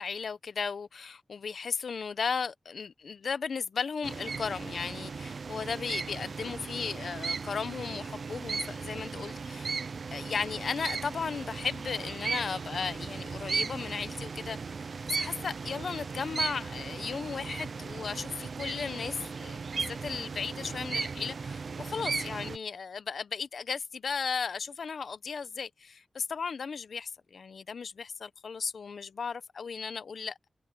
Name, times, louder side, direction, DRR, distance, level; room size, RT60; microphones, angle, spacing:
voice 1, 0.0-9.7 10.1-30.5, left 5 dB, 75° left, 0.7 m, -35 dB
sound 1, 4.0-22.6, right 5 dB, 60° right, 0.4 m, -36 dB
wide cardioid pair, 140°, 0 cm